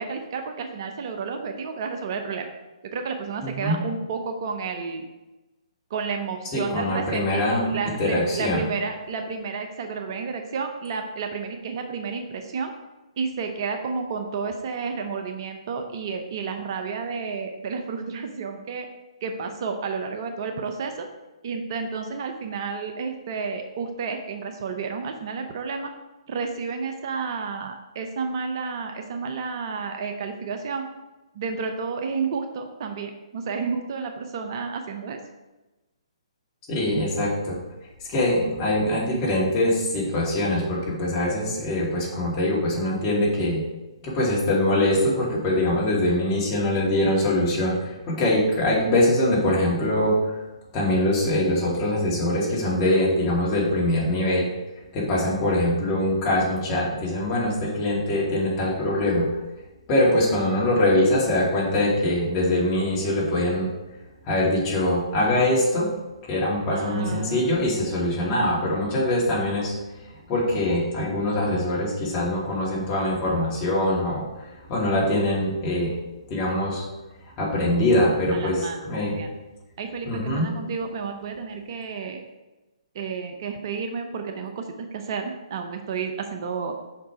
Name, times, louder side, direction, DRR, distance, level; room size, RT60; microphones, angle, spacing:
voice 1, 0.0-2.5 2.8-5.1 5.9-12.7 13.2-18.9 19.2-21.1 21.4-25.9 26.3-30.9 31.3-35.2 36.9-37.0 66.7-67.6 71.4-71.6 78.3-79.4 79.8-82.2 82.9-86.8, right 5 dB, 45° right, 5 dB, 0.7 m, -31 dB
voice 2, 3.4-3.8 6.5-7.7 8.0-8.6 36.7-37.6 38.1-43.6 44.0-50.2 50.7-54.5 54.9-59.3 59.9-63.7 64.3-65.9 66.3-69.7 70.3-74.2 74.7-75.9 76.3-76.8 77.4-79.1 80.1-80.5, left 1 dB, 30° left, -5 dB, 2.3 m, -23 dB
5.5 x 4.7 x 4.9 m, 1.1 s
figure-of-eight pair, 130°, 3 cm